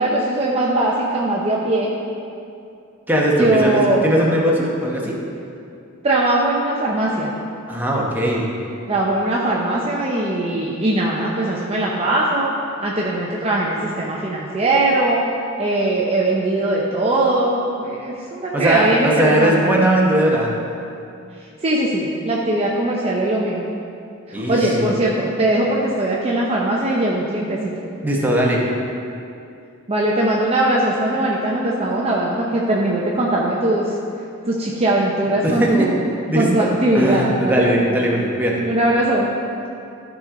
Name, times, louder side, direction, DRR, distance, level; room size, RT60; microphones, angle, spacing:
voice 1, 0.0-1.9 3.4-4.0 6.0-7.3 8.9-12.5 12.8-15.2 15.6-19.7 21.6-23.6 24.5-27.7 29.9-34.0 34.5-36.0 36.3-37.7 38.7-39.3, right 1 dB, 30° right, -3 dB, 0.7 m, -20 dB
voice 2, 3.1-5.2 7.7-8.5 18.5-20.6 24.3-24.9 28.0-28.6 35.4-35.9 36.3-36.7 36.9-38.6, right 1 dB, 10° right, -3 dB, 1.1 m, -19 dB
13.0 x 5.0 x 3.8 m, 2.6 s
head